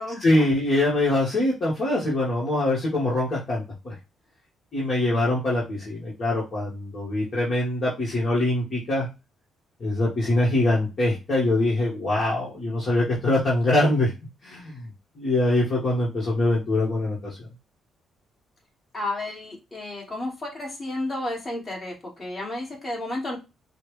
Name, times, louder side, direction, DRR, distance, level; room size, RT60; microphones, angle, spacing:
voice 1, 0.1-3.9 4.7-9.1 9.8-14.1 14.4-14.9 15.2-17.5, left 1 dB, 45° left, -5 dB, 1.8 m, -23 dB
voice 2, 18.9-23.4, left 1 dB, 30° left, -2 dB, 2.5 m, -32 dB
5.6 x 2.5 x 3.3 m, 0.26 s
cardioid pair, 90°, 0 cm